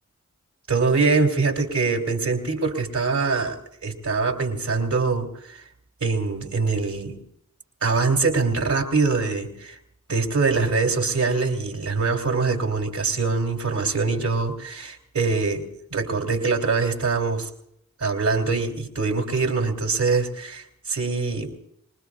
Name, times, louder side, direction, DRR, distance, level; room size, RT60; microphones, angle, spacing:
voice 1, 0.7-5.6 6.0-7.2 7.8-9.8 10.1-17.5 18.0-21.5, right 4 dB, 85° right, 2 dB, 2.9 m, -23 dB
25.5 x 20.5 x 2.4 m, 0.72 s
cardioid pair, 50°, 29 cm